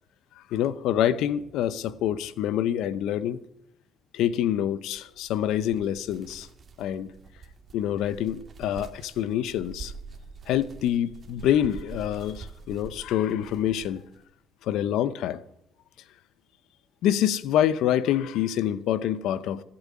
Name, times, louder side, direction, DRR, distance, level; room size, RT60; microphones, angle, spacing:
voice 1, 0.5-3.4 4.1-6.5 6.8-7.1 7.7-9.9 10.5-14.0 14.6-15.4 17.0-19.6, left 11 dB, 80° left, 0.7 m, -26 dB
sound 1, 4.9-14.2, right 5 dB, 40° right, 1.8 m, -45 dB
15.0 x 8.7 x 9.6 m
cardioid pair, 90°, 0 cm